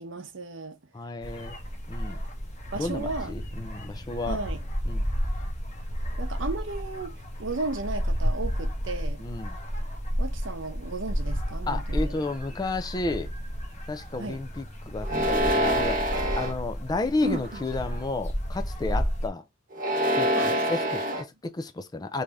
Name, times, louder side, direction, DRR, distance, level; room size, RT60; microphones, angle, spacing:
voice 1, 0.0-0.8 2.7-3.3 4.3-4.6 6.2-9.3 10.2-12.1 14.2-14.4 17.2-17.6 20.4-21.1, right 3 dB, 75° right, 0.8 m, -35 dB
voice 2, 0.9-1.6 1.9-2.2 2.7-4.4 4.9-5.0 9.2-9.6 11.7-13.3 13.9-16.0 16.3-19.4 20.1-22.2, left 3 dB, 20° left, 0.4 m, -32 dB
sound 1, 1.2-19.3, equal, 35° left, 0.9 m, -32 dB
sound 2, 15.0-16.5 17.2-17.7 19.7-21.2, equal, 45° right, 1.0 m, -26 dB
3.3 x 2.7 x 3.4 m
head